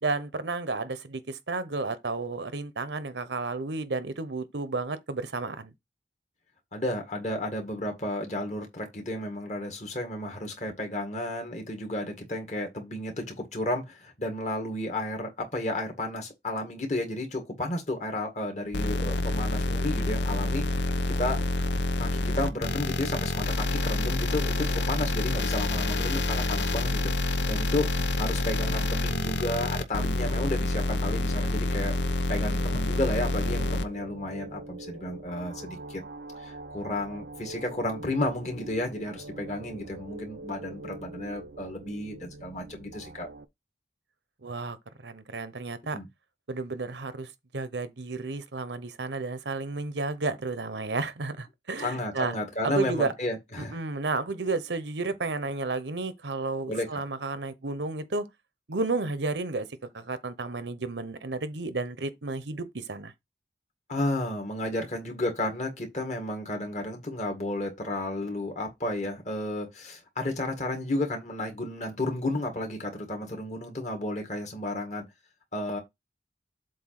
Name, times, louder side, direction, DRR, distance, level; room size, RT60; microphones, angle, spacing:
voice 1, 0.0-5.7 44.4-46.0 46.5-52.3 52.6-53.1 53.6-58.3 58.7-59.7 59.9-63.1, right 3 dB, 85° right, 0.9 m, -32 dB
voice 2, 6.7-20.8 21.2-21.4 22.0-31.9 32.3-36.0 36.4-43.3 45.9-46.1 51.8-53.8 56.7-56.9 63.9-75.0 75.5-75.8, left 1 dB, 40° left, 1.8 m, -32 dB
sound 1, 18.7-33.8, left 2 dB, 85° left, 0.8 m, -27 dB
sound 2, 32.0-43.4, right 2 dB, 65° right, 0.6 m, -44 dB
7.7 x 2.8 x 5.8 m
head